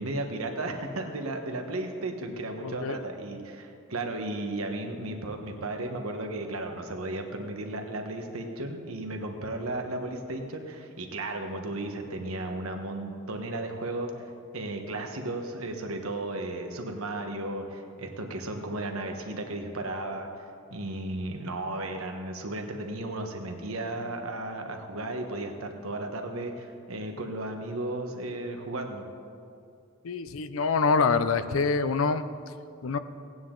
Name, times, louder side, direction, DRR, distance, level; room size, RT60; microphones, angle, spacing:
voice 1, 0.0-14.1 14.5-20.3 20.7-29.0, right 2 dB, 90° right, 4 dB, 1.2 m, -34 dB
voice 2, 2.6-3.0 30.0-32.2 32.8-33.0, left 4 dB, 75° left, 12 dB, 0.5 m, -25 dB
17.0 x 9.4 x 3.8 m, 2.5 s
head